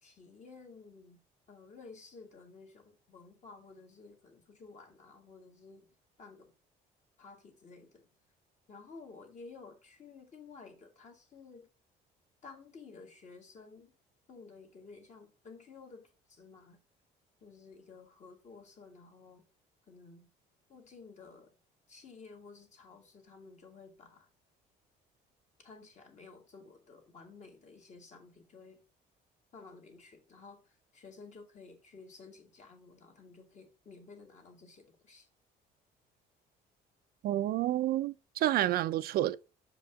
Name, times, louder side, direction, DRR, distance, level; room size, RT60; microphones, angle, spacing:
voice 1, 0.0-1.2 1.5-5.9 6.2-6.5 7.2-8.1 8.7-11.7 12.4-13.9 14.3-16.8 17.4-19.4 19.9-20.3 20.7-21.5 21.9-24.3 25.6-28.8 29.5-35.3, left 4 dB, 45° left, 1.9 m, -53 dB
voice 2, 37.2-39.4, right 13 dB, 65° right, 0.4 m, -29 dB
6.0 x 5.0 x 3.5 m
cardioid pair, 110°, 17 cm